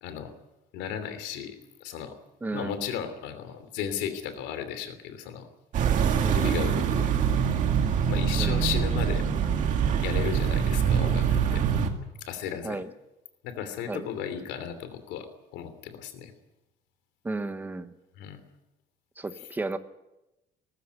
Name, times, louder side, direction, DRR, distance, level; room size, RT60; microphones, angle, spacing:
voice 1, 0.0-0.3 0.7-2.2 2.5-5.5 6.3-7.1 8.1-9.2 10.0-11.3 11.5-11.6 12.2-12.8 13.4-16.3 18.2-18.4, left 9 dB, 90° left, 10 dB, 3.0 m, -35 dB
voice 2, 2.4-2.9 6.2-6.6 8.4-8.7 12.6-12.9 13.9-14.1 17.2-17.9 19.2-19.8, right 3 dB, 10° right, 10 dB, 0.9 m, -34 dB
sound 1, 5.7-11.9, right 7 dB, 45° right, 2.1 m, -24 dB
19.5 x 15.0 x 9.3 m, 0.96 s
cardioid pair, 180°, 18 cm